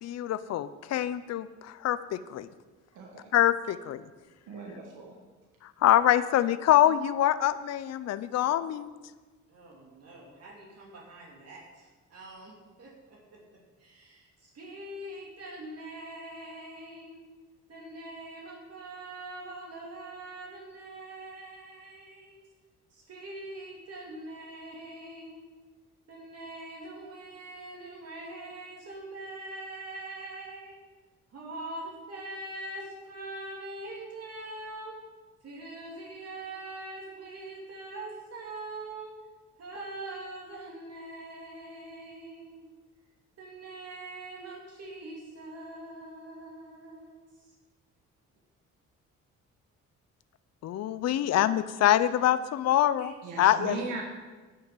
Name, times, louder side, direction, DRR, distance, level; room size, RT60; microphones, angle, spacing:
voice 1, 0.0-2.5 3.3-4.0 5.8-8.9 50.6-53.8, left 12 dB, 60° left, 14 dB, 0.6 m, -25 dB
voice 2, 2.9-3.3 4.5-5.1 53.2-54.0, right 4 dB, 85° right, 0 dB, 1.4 m, -38 dB
voice 3, 9.5-13.4 13.8-17.2 17.7-22.4 22.9-25.5 26.1-30.8 31.3-35.0 35.4-39.2 39.6-42.7 43.4-47.2, right 2 dB, 55° right, -2 dB, 2.3 m, -43 dB
10.0 x 5.6 x 8.2 m, 1.3 s
cardioid pair, 90°, 30 cm